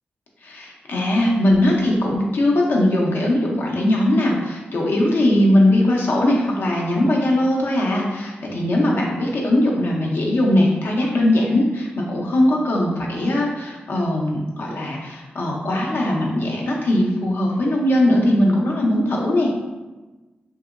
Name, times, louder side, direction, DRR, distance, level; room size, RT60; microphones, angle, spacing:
voice 1, 0.4-19.5, left 1 dB, 70° left, -1 dB, 0.6 m, -20 dB
2.8 x 2.7 x 2.4 m, 1.2 s
cardioid pair, 70°, 4 cm